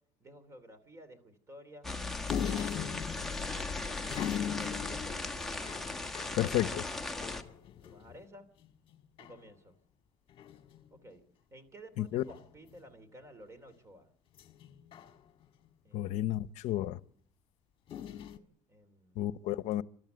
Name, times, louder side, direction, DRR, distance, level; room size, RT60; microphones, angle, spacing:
voice 1, 0.2-2.9 3.3-5.3 7.3-8.5 9.2-9.8 10.9-11.2 11.5-14.1 15.8-16.2 18.7-19.2, right 1 dB, 20° right, 2.8 m, -53 dB
sound 1, 1.8-7.4, left 3 dB, 5° left, 1.3 m, -37 dB
sound 2, 2.3-8.2 8.6-8.7 8.9-9.4 10.3-10.9 12.2-12.7 14.4-15.7 17.9-18.4, left 10 dB, 40° left, 1.5 m, -40 dB
voice 2, 6.4-6.9 12.0-12.2 15.9-17.0 19.2-19.8, left 14 dB, 65° left, 0.8 m, -31 dB
29.0 x 12.5 x 7.9 m
cardioid pair, 135°, 13 cm